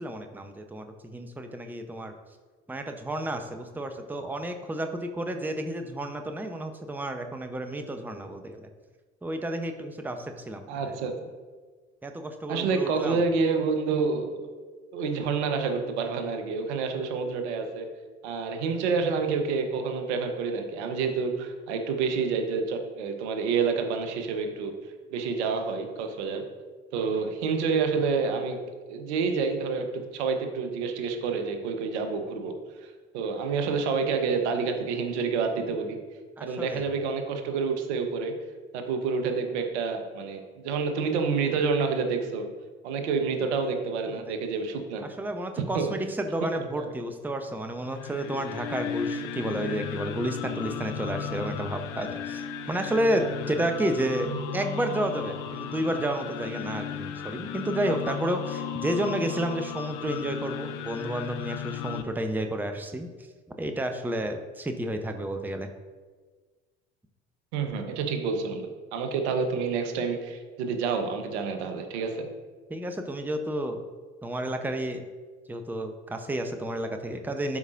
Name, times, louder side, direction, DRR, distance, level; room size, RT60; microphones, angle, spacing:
voice 1, 0.0-2.1 2.7-8.7 9.2-11.0 12.0-13.2 36.4-36.9 44.1-44.3 45.0-63.3 63.6-65.7 72.7-73.8 74.2-75.0 75.5-77.6, right 1 dB, 5° right, 6 dB, 0.7 m, -31 dB
voice 2, 10.7-11.1 12.5-14.5 14.9-17.9 18.2-24.7 25.1-26.4 26.9-28.6 28.9-32.5 32.8-36.0 36.4-38.3 38.7-42.4 42.8-45.1 45.7-45.9 46.4-46.5 46.8-46.9 67.5-72.3, right 5 dB, 75° right, 6 dB, 1.0 m, -28 dB
sound 1, 47.8-62.0, left 8 dB, 60° left, 0.7 m, -35 dB
12.0 x 4.9 x 2.5 m, 1.4 s
hypercardioid pair, 60°, 34 cm